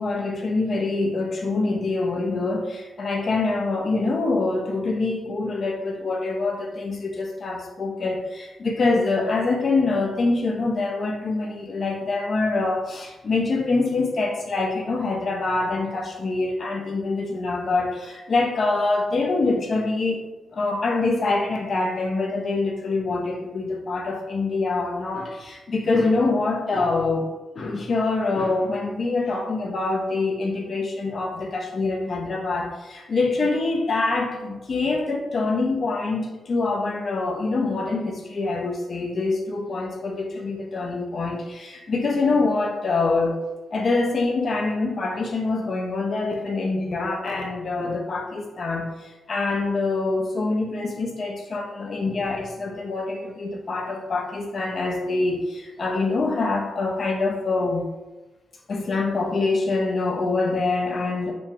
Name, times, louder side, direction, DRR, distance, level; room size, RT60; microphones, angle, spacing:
voice 1, 0.0-20.2 20.5-27.3 27.6-43.4 43.7-57.8 58.7-61.3, left 3 dB, 55° left, 0 dB, 0.5 m, -25 dB
2.9 x 2.7 x 3.5 m, 1.1 s
cardioid pair, 60°, 0 cm